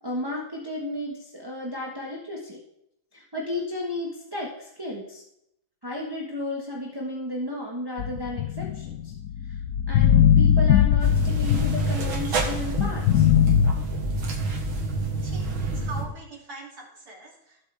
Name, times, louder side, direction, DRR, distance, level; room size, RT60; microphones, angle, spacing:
voice 1, 0.0-2.6 3.1-5.2 5.8-9.1 9.4-9.6 9.9-13.3, left 1 dB, 15° right, -3 dB, 1.4 m, -33 dB
sound 1, 8.0-12.3 12.8-13.7, left 9 dB, 75° left, 0.8 m, -20 dB
sound 2, 11.0-16.1, right 2 dB, 85° right, 2.4 m, -28 dB
voice 2, 15.2-17.6, right 2 dB, 50° right, -3 dB, 3.4 m, -42 dB
15.5 x 8.2 x 3.5 m, 0.78 s
omnidirectional pair, 2.2 m